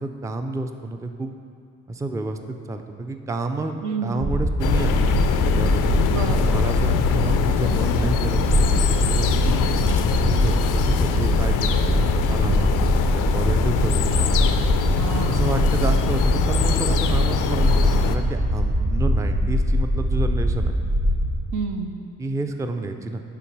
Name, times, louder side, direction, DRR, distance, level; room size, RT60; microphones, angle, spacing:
voice 1, 0.0-1.3 1.9-5.1 5.5-5.8 6.5-9.7 10.2-14.3 15.3-20.7 22.2-23.2, right 2 dB, 10° right, 6 dB, 0.3 m, -30 dB
voice 2, 3.8-4.3 6.1-6.6 14.9-15.7 21.5-22.1, right 5 dB, 85° right, 5 dB, 0.7 m, -30 dB
sound 1, 4.2-21.4, equal, 40° right, 1.6 m, -22 dB
sound 2, 4.6-18.2, left 9 dB, 90° left, 0.5 m, -24 dB
7.0 x 5.0 x 4.6 m, 2.4 s
cardioid pair, 90°, 30 cm